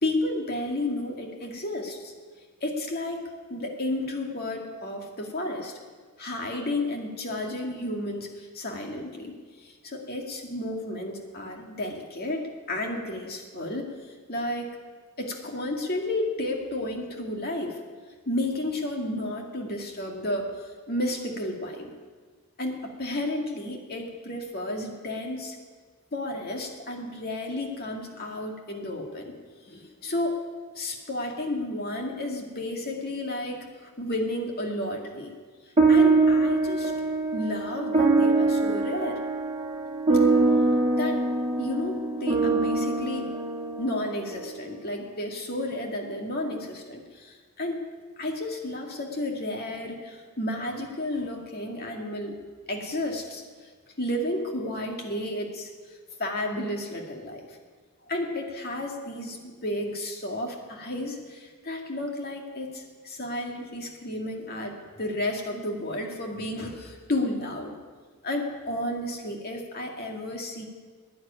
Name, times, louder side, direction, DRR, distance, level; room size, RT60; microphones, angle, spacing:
voice 1, 0.0-2.1 2.6-3.2 3.5-5.7 6.2-12.4 12.7-13.9 14.3-14.7 15.2-17.8 18.3-21.9 22.6-25.6 26.1-29.3 29.6-35.3 35.6-36.9 37.3-39.2 40.9-41.2 41.6-43.3 43.8-47.8 48.2-52.4 52.7-53.7 54.0-55.7 56.2-57.6 58.0-67.8 68.2-70.6, left 1 dB, 45° left, 1 dB, 2.2 m, -32 dB
sound 1, 35.8-44.4, right 3 dB, 30° right, 2.3 m, -23 dB
12.0 x 10.0 x 10.0 m, 1.5 s
head